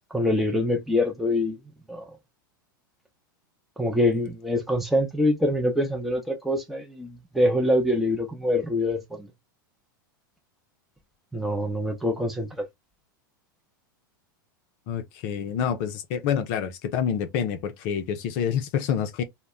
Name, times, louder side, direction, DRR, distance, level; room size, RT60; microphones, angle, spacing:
voice 1, 0.1-1.6 1.9-2.1 3.8-9.3 11.3-12.6, left 1 dB, ahead, 0.6 m, -25 dB
voice 2, 14.9-19.2, left 8 dB, 55° left, 0.5 m, -27 dB
2.1 x 2.0 x 3.6 m
hypercardioid pair, 100°, 11 cm